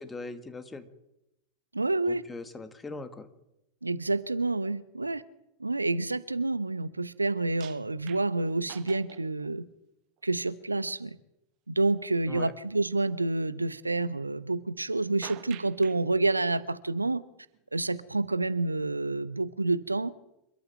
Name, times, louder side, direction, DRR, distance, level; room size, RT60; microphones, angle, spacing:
voice 1, 0.1-0.9 2.1-3.3 12.3-12.5, left 3 dB, 10° left, 11 dB, 2.1 m, -40 dB
voice 2, 1.7-2.2 3.8-5.2 5.6-9.6 10.2-11.2 11.7-17.2 17.7-20.1, right 2 dB, 80° right, 17 dB, 0.8 m, -28 dB
sound 1, 7.6-9.5 10.2-10.3 15.2-16.0 17.5-17.6, right 17 dB, 40° right, 1.4 m, -47 dB
27.5 x 12.5 x 9.0 m, 0.89 s
figure-of-eight pair, 90°, 0 cm